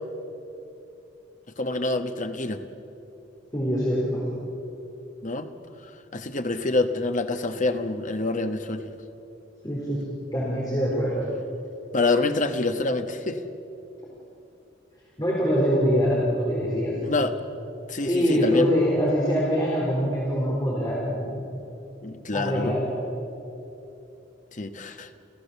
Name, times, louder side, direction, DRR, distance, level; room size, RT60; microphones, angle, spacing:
voice 1, 1.6-2.6 5.2-5.5 6.1-8.9 11.9-13.4 17.0-17.3 17.9-18.7 22.0-22.7 24.5-25.1, left 2 dB, 45° left, 7 dB, 1.2 m, -26 dB
voice 2, 3.5-4.2 9.6-10.0 10.3-11.2 15.2-17.0 18.0-21.3 22.3-23.0, equal, 20° left, -6 dB, 4.1 m, -24 dB
29.0 x 15.5 x 7.0 m, 2.9 s
head